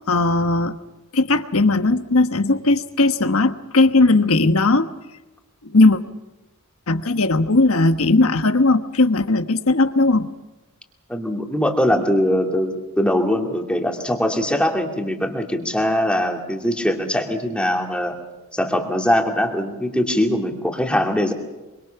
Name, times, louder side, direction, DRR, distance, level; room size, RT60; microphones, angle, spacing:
voice 1, 0.1-0.7 1.1-4.9 5.7-6.0 6.9-10.3, left 2 dB, 75° left, 9 dB, 1.3 m, -17 dB
voice 2, 11.1-18.1 18.5-21.3, left 1 dB, 5° left, 2 dB, 2.5 m, -21 dB
25.5 x 24.5 x 5.9 m, 1.1 s
head